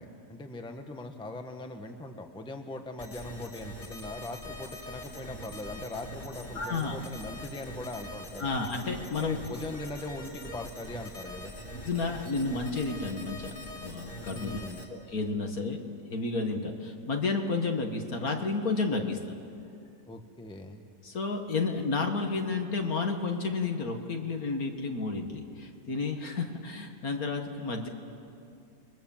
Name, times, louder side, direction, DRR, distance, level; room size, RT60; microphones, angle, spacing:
voice 1, 0.0-8.5 9.2-11.5 14.3-14.8 20.1-20.8, left 2 dB, 5° left, 5 dB, 1.1 m, -40 dB
sound 1, 3.0-14.8, left 1 dB, 30° left, 3.0 m, -43 dB
voice 2, 6.6-7.0 8.4-9.4 11.7-13.5 13.8-14.6 14.9-15.8 16.1-19.2 21.0-27.9, left 3 dB, 60° left, 4 dB, 2.2 m, -31 dB
29.5 x 22.0 x 7.4 m, 2.5 s
omnidirectional pair, 1.8 m